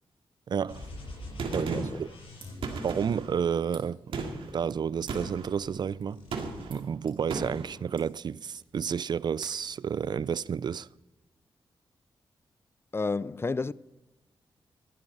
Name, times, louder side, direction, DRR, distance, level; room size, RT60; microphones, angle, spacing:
voice 1, 0.5-0.9 1.5-2.1 2.8-4.1 4.5-6.2 6.7-10.9, right 7 dB, 50° right, 0.4 m, -31 dB
sound 1, 0.7-4.0 4.7-5.8 6.0-6.6, left 2 dB, 85° left, 6.2 m, -45 dB
Gunshot gunfire, 1.4-2.1 2.6-3.3 4.1-4.5 5.1-5.5 6.3-6.8 7.3-7.7, right 4 dB, 85° right, 2.1 m, -35 dB
sound 2, 2.1-10.6, right 4 dB, 70° right, 4.3 m, -58 dB
voice 2, 12.9-13.7, left 3 dB, 25° left, 0.4 m, -30 dB
15.0 x 11.0 x 5.4 m
cardioid pair, 85°, 9 cm